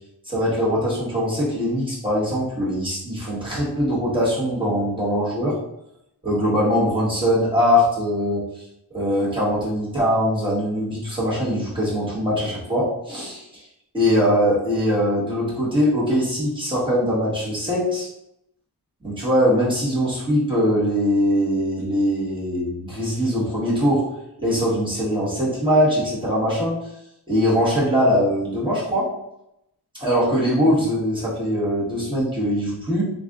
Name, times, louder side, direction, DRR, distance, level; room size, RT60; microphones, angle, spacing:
voice 1, 0.2-5.6 6.2-8.4 8.9-13.4 13.9-18.1 19.0-24.0 24.4-26.8 27.3-29.1 30.0-33.1, equal, 15° right, -7 dB, 1.2 m, -21 dB
3.6 x 3.3 x 2.4 m, 0.81 s
wide cardioid pair, 180°, 39 cm